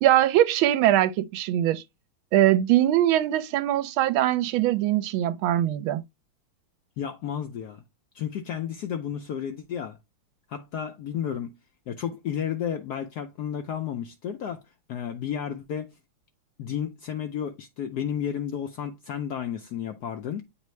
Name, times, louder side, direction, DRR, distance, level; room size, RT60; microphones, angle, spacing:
voice 1, 0.0-1.8 2.3-6.0, right 13 dB, 80° right, 1.4 m, -22 dB
voice 2, 7.0-7.8 8.1-10.0 10.5-11.5 11.9-14.6 14.9-15.9 16.6-20.4, left 9 dB, 75° left, 0.9 m, -32 dB
9.1 x 3.3 x 3.1 m
omnidirectional pair, 2.3 m